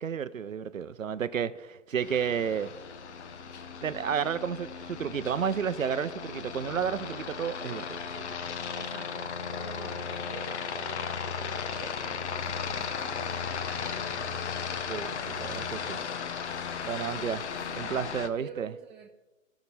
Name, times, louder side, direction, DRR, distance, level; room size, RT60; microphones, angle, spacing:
voice 1, 0.0-2.7 3.8-8.0 14.9-16.0 16.8-17.4 17.8-18.7, right 7 dB, 90° right, 14 dB, 0.6 m, -31 dB
Aircraft, 2.0-18.3, left 6 dB, 60° left, 0.9 m, -36 dB
voice 2, 8.7-15.0 17.3-19.1, right 7 dB, 35° right, 0 dB, 1.3 m, -49 dB
sound 1, 11.4-16.6, right 2 dB, 5° right, 0.4 m, -54 dB
15.0 x 5.9 x 4.1 m, 1.1 s
figure-of-eight pair, 125°, 38 cm